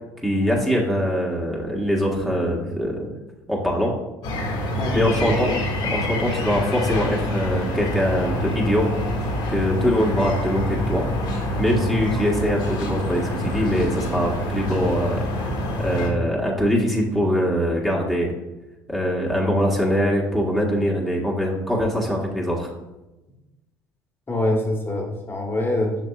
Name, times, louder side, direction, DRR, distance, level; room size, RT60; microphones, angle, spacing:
voice 1, 0.2-3.1 3.5-3.9 4.9-5.5 5.9-8.9 9.5-11.0 11.6-15.2 15.8-18.3 18.9-22.7, equal, ahead, -3 dB, 1.6 m, -22 dB
sound 1, 4.2-16.1, left 1 dB, 70° left, 2.2 m, -26 dB
voice 2, 4.7-5.1 24.3-25.9, left 1 dB, 25° left, -1 dB, 1.5 m, -24 dB
7.2 x 5.9 x 2.5 m, 1.0 s
hypercardioid pair, 70°, 9 cm